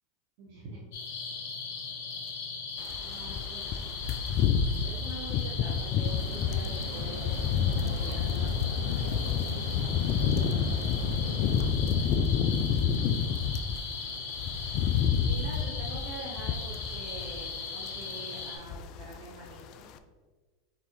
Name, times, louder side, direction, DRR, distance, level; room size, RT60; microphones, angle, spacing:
voice 1, 0.4-0.8 3.0-4.0 4.8-9.3 10.3-12.3 12.9-13.5 14.8-19.9, right 2 dB, 65° right, -5 dB, 1.0 m, -46 dB
sound 1, 0.9-18.6, left 5 dB, 70° left, 1.0 m, -38 dB
sound 2, 2.9-13.8 14.1-17.6 17.8-18.1 18.4-19.2 19.5-19.7, left 7 dB, 55° left, 0.3 m, -29 dB
sound 3, 6.1-11.7, right 1 dB, 85° right, 0.6 m, -41 dB
4.0 x 3.9 x 3.1 m, 1.4 s
hypercardioid pair, 105°, 0 cm